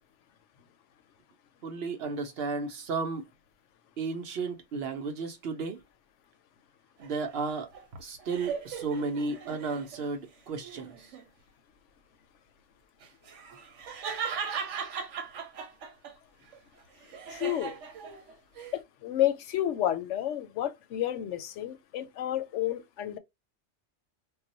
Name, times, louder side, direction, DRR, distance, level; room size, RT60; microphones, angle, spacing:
voice 1, 1.6-3.3 4.0-5.8 7.0-7.7 8.0-11.1, right 4 dB, 60° right, 0.8 m, -33 dB
sound 1, 7.0-10.1 10.6-11.3 13.0-16.1 16.5-18.7, right 6 dB, 90° right, 1.0 m, -38 dB
voice 2, 17.3-17.7 18.7-23.2, left 12 dB, 80° left, 0.9 m, -30 dB
2.3 x 2.1 x 3.9 m
omnidirectional pair, 1.2 m